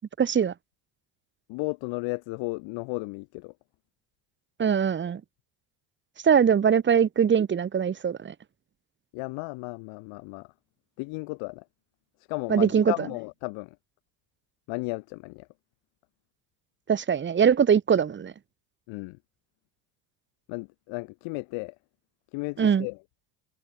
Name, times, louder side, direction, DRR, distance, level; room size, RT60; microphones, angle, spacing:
voice 1, 0.2-0.5 4.6-5.2 6.2-8.3 12.5-12.9 16.9-18.3 22.6-22.9, right 7 dB, 25° right, 1.0 m, -22 dB
voice 2, 1.5-3.5 9.1-10.5 11.0-11.6 12.3-13.8 14.7-15.5 18.9-19.2 20.5-21.7 22.3-23.0, left 28 dB, 75° left, 3.1 m, -34 dB
supercardioid pair, 90°, 46 cm